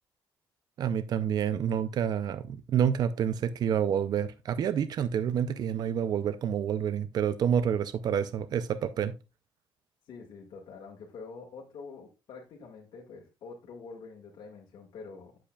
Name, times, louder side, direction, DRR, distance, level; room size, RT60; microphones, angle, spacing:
voice 1, 0.8-9.1, right 8 dB, 55° right, 0.5 m, -28 dB
voice 2, 10.1-15.4, left 4 dB, 70° left, 1.8 m, -46 dB
8.6 x 7.6 x 2.3 m
cardioid pair, 130°, 8 cm